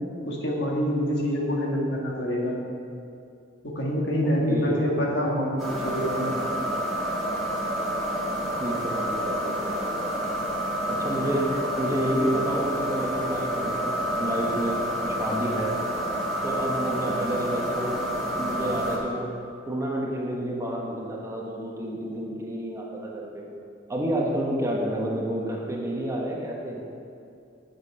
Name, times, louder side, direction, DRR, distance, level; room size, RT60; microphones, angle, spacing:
voice 1, 0.2-2.6 3.6-6.3, equal, 65° left, -2 dB, 1.7 m, -26 dB
voice 2, 4.2-4.9 8.6-9.7 10.9-15.8 16.4-18.0 18.3-19.3 19.7-23.4 23.9-26.8, right 1 dB, 15° right, -2 dB, 1.2 m, -29 dB
sound 1, 5.6-19.0, equal, ahead, 1.8 m, -29 dB
8.5 x 8.0 x 5.5 m, 2.5 s
head